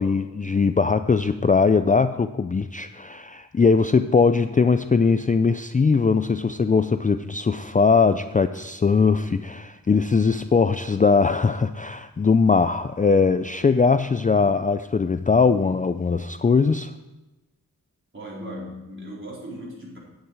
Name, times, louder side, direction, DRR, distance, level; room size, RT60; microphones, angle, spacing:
voice 1, 0.0-16.9, left 4 dB, 25° left, 10 dB, 0.4 m, -20 dB
voice 2, 10.1-10.7 18.1-20.0, equal, 35° right, -4 dB, 4.2 m, -38 dB
10.5 x 9.5 x 4.8 m, 1.1 s
wide cardioid pair, 70°, 34 cm